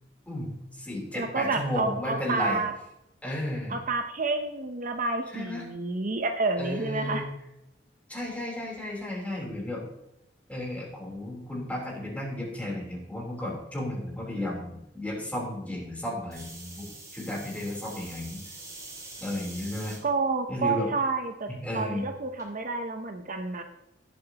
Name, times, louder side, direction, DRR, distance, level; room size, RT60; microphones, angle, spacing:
voice 1, 0.3-2.6 3.2-3.8 5.3-5.7 6.6-7.3 8.1-9.8 10.5-18.4 19.2-20.0 20.5-20.9 21.5-22.1, left 1 dB, 10° left, -3 dB, 3.6 m, -33 dB
voice 2, 1.1-2.7 3.7-7.2 20.0-23.6, right 3 dB, 45° right, 6 dB, 0.8 m, -29 dB
sound 1, 16.3-20.0 20.7-21.1 22.4-22.5, right 2 dB, 20° right, 2.9 m, -44 dB
17.5 x 7.8 x 2.9 m, 0.87 s
head